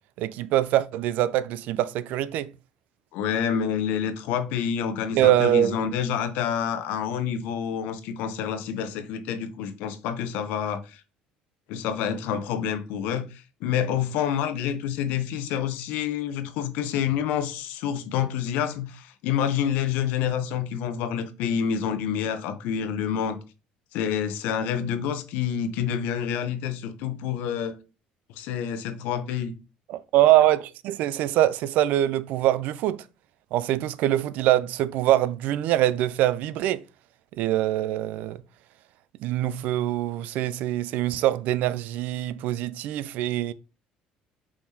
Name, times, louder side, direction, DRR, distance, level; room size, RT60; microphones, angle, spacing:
voice 1, 0.2-2.5 5.2-5.8 29.9-33.0 33.5-36.8 37.4-38.4 39.2-43.5, right 13 dB, 70° right, 0.3 m, -23 dB
voice 2, 3.1-11.0 11.7-23.4 23.9-27.8 28.3-29.5, left 8 dB, 80° left, 0.6 m, -28 dB
4.8 x 3.5 x 2.7 m
supercardioid pair, 95°, 3 cm